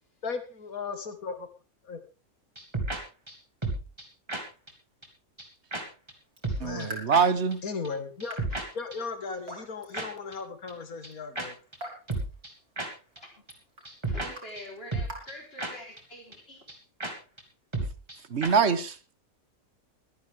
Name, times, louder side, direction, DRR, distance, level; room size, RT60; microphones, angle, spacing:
voice 1, 0.2-1.5 1.8-2.0 6.6-7.1 7.6-8.4 8.7-11.5, left 5 dB, 80° left, 9 dB, 2.4 m, -36 dB
sound 1, 2.6-3.0 3.3-3.4 3.6-4.0 4.3-4.4 4.7-4.8 5.0-5.1 5.4-5.5 5.7-5.8 6.1-6.2 6.4-6.9 7.1-7.2 7.5-7.6 7.8-7.9 8.2-8.6 8.9-9.0 9.9-10.1 10.3-10.4 10.7-10.8 11.0-11.1 11.4-11.5 11.7-11.8 12.1-12.5 12.8-12.9 13.2-13.3 13.5-13.6 13.8-14.3 14.6-14.7 14.9-15.3 15.6-15.7 16.0-16.1 16.3-16.4 16.7-16.8 17.0-17.1 17.4-17.5 17.7-18.2 18.4-18.5, right 2 dB, 20° right, 2.6 m, -32 dB
Raindrop / Drip, 6.2-16.1, right 1 dB, 85° right, 4.2 m, -48 dB
voice 2, 6.6-7.6 18.3-19.0, right 6 dB, 55° right, 14 dB, 1.3 m, -24 dB
voice 3, 14.0-16.6, left 1 dB, 40° left, 1 dB, 4.5 m, -45 dB
22.5 x 9.5 x 3.6 m, 0.32 s
omnidirectional pair, 1.5 m